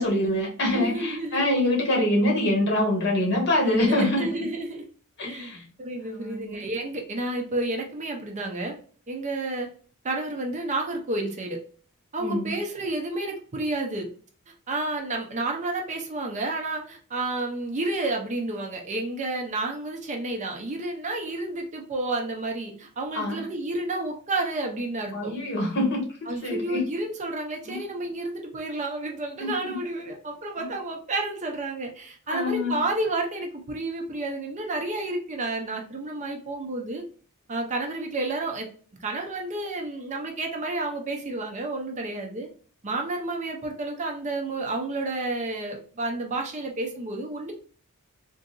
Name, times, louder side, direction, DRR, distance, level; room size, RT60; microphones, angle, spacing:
voice 1, 0.0-4.3 5.2-5.6 6.1-6.6 12.2-12.5 23.1-23.4 25.1-26.0 26.4-26.8 27.7-27.8 29.4-29.7 32.3-32.8, left 1 dB, 50° left, -1 dB, 1.2 m, -25 dB
voice 2, 0.7-1.5 3.8-4.9 5.2-5.5 5.8-8.8 9.1-9.7 10.0-11.6 12.1-14.1 14.7-25.3 26.3-37.0 37.5-38.7 39.0-42.5 42.8-47.5, right 2 dB, 35° right, 2 dB, 0.6 m, -30 dB
3.7 x 2.6 x 2.3 m, 0.42 s
head